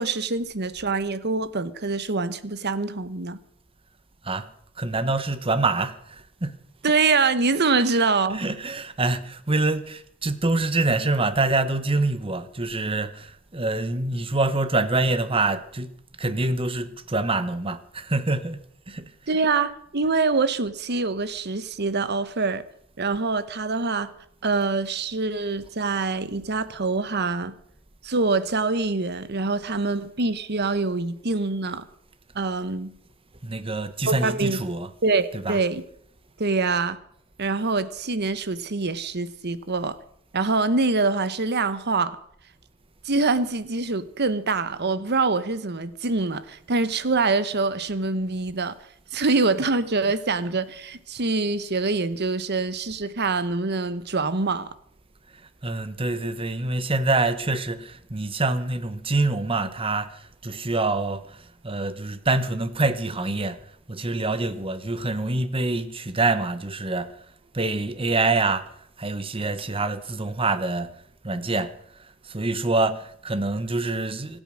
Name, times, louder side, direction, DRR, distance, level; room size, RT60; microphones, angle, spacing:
voice 1, 0.0-3.4 6.8-8.4 19.3-22.6 23.0-24.1 24.4-27.5 28.0-31.8 32.3-32.9 34.1-34.6 35.0-35.8 36.4-37.0 37.4-40.0 40.3-42.2 43.0-48.8 49.1-54.7, right 3 dB, 50° right, 1.1 m, -25 dB
voice 2, 4.8-6.6 8.3-18.6 18.9-19.0 33.4-34.9 35.3-35.6 55.6-63.6 63.9-67.1 67.5-68.7 69.0-70.9 71.2-71.7 72.2-74.4, right 2 dB, 25° right, 1.1 m, -26 dB
25.5 x 8.9 x 6.4 m
head